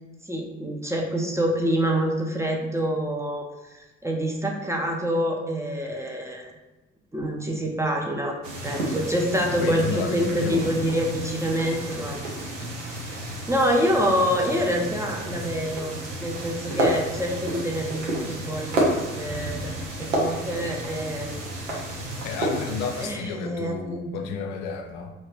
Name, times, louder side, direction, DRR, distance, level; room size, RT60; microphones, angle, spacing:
voice 1, 0.3-3.4 3.7-6.5 7.1-8.4 8.6-12.2 12.9-15.9 16.2-19.7 20.0-21.4 21.8-22.1 23.0-24.1, equal, 10° right, 0 dB, 0.5 m, -26 dB
sound 1, 8.4-23.1, right 1 dB, 85° right, 0.7 m, -31 dB
voice 2, 9.6-10.7 22.2-25.1, left 5 dB, 70° left, 4 dB, 0.5 m, -31 dB
2.8 x 2.7 x 3.2 m, 1.1 s
figure-of-eight pair, 45°, 36 cm